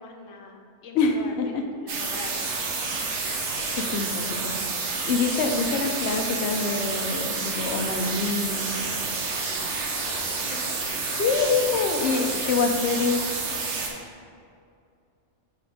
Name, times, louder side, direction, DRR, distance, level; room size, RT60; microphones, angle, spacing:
voice 1, 0.0-2.7 10.4-10.7 12.0-12.3 13.0-13.2, left 4 dB, 80° left, 2 dB, 1.1 m, -43 dB
voice 2, 0.9-1.6 3.2-3.4 3.8-4.7 5.1-8.8 11.1-13.2, left 4 dB, 65° left, 3 dB, 0.8 m, -26 dB
sound 1, 1.9-13.9, right 4 dB, 65° right, 1.1 m, -29 dB
sound 2, 4.7-11.6, equal, 20° right, 1.2 m, -45 dB
5.9 x 4.2 x 4.9 m, 2.4 s
omnidirectional pair, 1.3 m